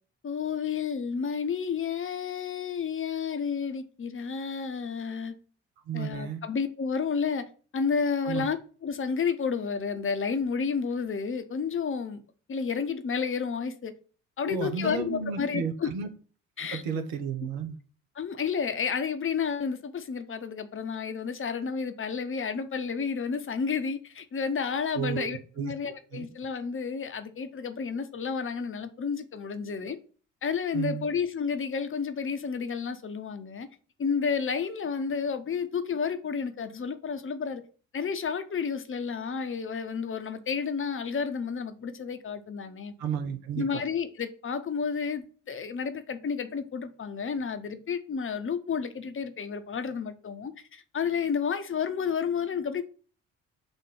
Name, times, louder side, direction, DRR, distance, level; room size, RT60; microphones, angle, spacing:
voice 1, 0.2-5.3 5.9-7.4 7.7-8.6 8.8-12.2 12.5-13.9 14.4-15.9 16.6-17.0 18.2-30.0 30.4-33.7 34.0-37.6 37.9-42.9 43.6-52.8, left 6 dB, 35° left, 0.9 m, -31 dB
voice 2, 5.9-6.4 8.3-8.5 14.5-16.1 16.7-17.8 24.9-25.7 26.1-26.3 30.7-31.1 43.0-43.8, right 7 dB, 65° right, 1.0 m, -33 dB
7.0 x 2.6 x 5.4 m
figure-of-eight pair, 45°, 38 cm